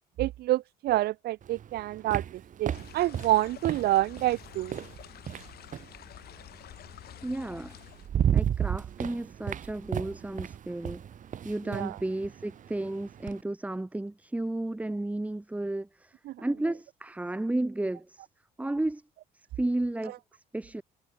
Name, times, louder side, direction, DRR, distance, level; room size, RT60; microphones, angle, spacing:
voice 1, 0.2-4.8 11.7-12.0 16.3-16.4, right 15 dB, 70° right, 0.9 m, -28 dB
sound 1, 1.4-6.0 7.3-7.4 7.8-13.4, right 9 dB, 50° right, 3.3 m, -33 dB
sound 2, 2.7-8.1, left 13 dB, 65° left, 7.7 m, -49 dB
voice 2, 7.2-7.8 8.3-11.0 11.4-18.3 18.6-19.0 19.6-20.8, right 2 dB, 10° right, 1.3 m, -33 dB
cardioid pair, 110°, 17 cm